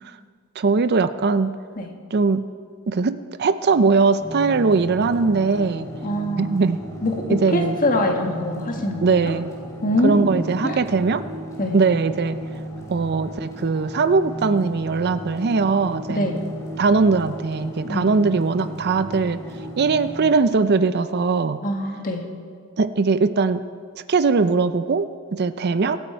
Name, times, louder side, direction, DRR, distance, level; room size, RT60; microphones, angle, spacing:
voice 1, 0.6-1.5 2.1-2.4 2.9-5.9 6.4-6.8 7.3-7.8 9.0-9.5 10.0-11.2 11.7-12.4 12.9-16.3 16.8-19.4 19.8-21.6 22.8-23.6 24.1-26.0, right 4 dB, 50° right, 12 dB, 0.5 m, -20 dB
sound 1, 4.2-20.3, equal, 15° left, 3.2 m, -35 dB
voice 2, 6.0-6.5 7.0-9.0 9.8-10.8 11.6-11.8 16.1-16.4 17.8-18.1 21.6-22.2, left 1 dB, 40° left, 2 dB, 1.7 m, -24 dB
24.0 x 8.8 x 4.5 m, 2.1 s
head